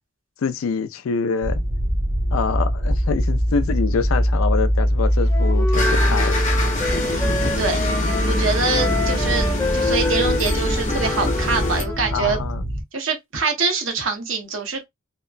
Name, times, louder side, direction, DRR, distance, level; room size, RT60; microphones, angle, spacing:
voice 1, 0.4-1.6 2.3-6.4 12.1-12.6, left 5 dB, 85° left, 0.4 m, -25 dB
sound 1, 1.4-12.8, equal, 25° right, 0.7 m, -23 dB
Wind instrument woodwind instrument, 5.3-8.3 8.7-12.2, left 2 dB, 15° left, 0.5 m, -28 dB
sound 2, 5.7-11.8, left 2 dB, 40° left, 0.8 m, -25 dB
voice 2, 7.0-7.8 8.3-12.4 12.9-14.8, right 4 dB, 70° right, 0.9 m, -25 dB
2.9 x 2.0 x 2.4 m
head